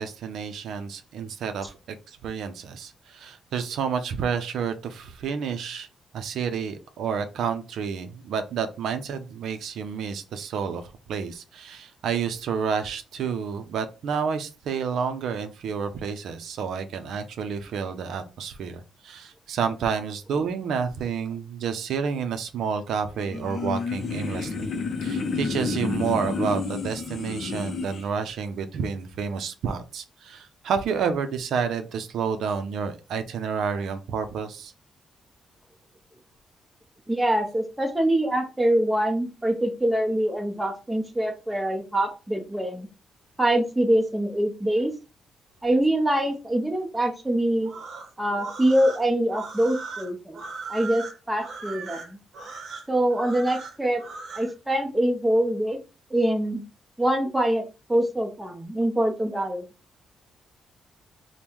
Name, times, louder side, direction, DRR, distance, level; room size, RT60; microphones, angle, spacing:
voice 1, 0.0-5.9 6.1-24.7 25.0-34.7, right 6 dB, 70° right, 8 dB, 0.5 m, -30 dB
sound 1, 23.2-28.0, left 4 dB, 40° left, 0.5 m, -30 dB
voice 2, 37.1-42.9 43.4-44.9 45.6-47.7 48.2-50.4 50.7-52.2 52.9-54.0 54.3-55.8 56.1-56.6 57.0-57.6 57.9-59.7, right 1 dB, 5° right, 4 dB, 0.7 m, -24 dB
sound 2, 47.6-54.5, right 4 dB, 55° right, 0.9 m, -38 dB
5.3 x 2.1 x 3.0 m, 0.31 s
cardioid pair, 155°, 0 cm